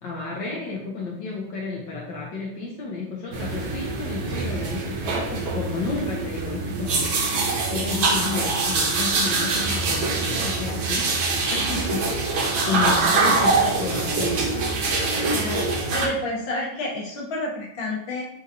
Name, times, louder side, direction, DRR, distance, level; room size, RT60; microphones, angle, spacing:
voice 1, 0.0-7.1 7.7-11.1 11.5-12.0 12.3-14.7, left 4 dB, 70° left, -3 dB, 1.3 m, -31 dB
sound 1, 3.3-16.1, right 3 dB, 65° right, 0.9 m, -24 dB
voice 2, 12.6-13.1 15.3-15.7 15.9-18.2, left 2 dB, 40° left, -4 dB, 0.9 m, -29 dB
3.9 x 3.8 x 2.6 m, 0.76 s
omnidirectional pair, 2.3 m